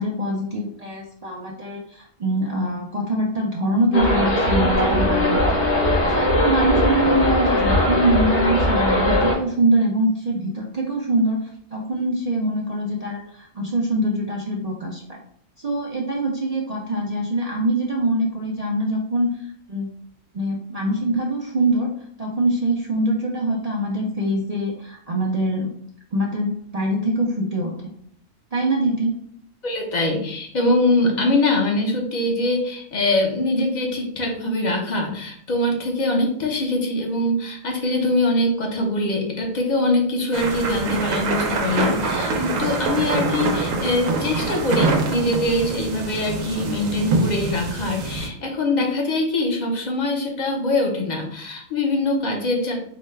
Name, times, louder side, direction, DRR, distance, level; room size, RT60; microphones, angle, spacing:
voice 1, 0.0-5.4 6.1-15.2 15.6-19.9 20.3-21.9 22.2-25.7 26.1-27.7 28.5-29.2, right 1 dB, 60° right, -2 dB, 0.4 m, -23 dB
sound 1, 3.9-9.3, left 1 dB, 55° left, 1.4 m, -19 dB
voice 2, 29.6-52.7, left 2 dB, 40° left, 1 dB, 0.8 m, -23 dB
sound 2, 40.3-48.3, right 3 dB, 90° right, 1.1 m, -25 dB
4.8 x 2.2 x 3.2 m, 0.67 s
omnidirectional pair, 1.4 m